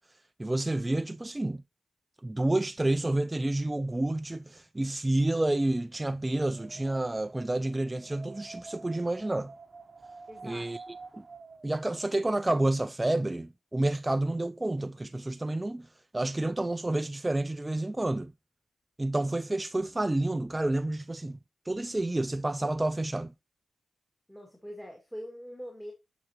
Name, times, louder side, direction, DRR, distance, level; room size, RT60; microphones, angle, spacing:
voice 1, 0.1-1.6 2.2-9.5 10.4-10.8 11.1-11.2 11.6-18.3 19.0-21.4 21.7-23.3, right 2 dB, 20° right, 0.3 m, -29 dB
Wind, 6.4-12.3, right 3 dB, 35° right, 0.8 m, -49 dB
voice 2, 10.3-10.7 24.3-25.9, equal, 5° left, 2.1 m, -43 dB
8.7 x 5.9 x 2.9 m
cardioid pair, 70°, 0 cm